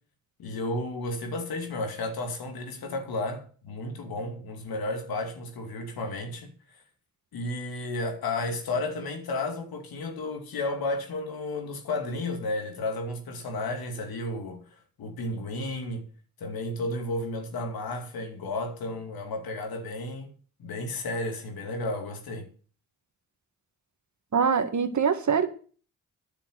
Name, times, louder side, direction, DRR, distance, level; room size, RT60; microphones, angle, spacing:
voice 1, 0.4-6.5 7.3-14.6 15.0-16.1 16.4-20.3 20.6-22.5, left 2 dB, 70° left, 2.6 m, -32 dB
voice 2, 24.3-25.5, right 6 dB, 50° right, 1.8 m, -23 dB
9.7 x 6.7 x 8.1 m
hypercardioid pair, 45°, 37 cm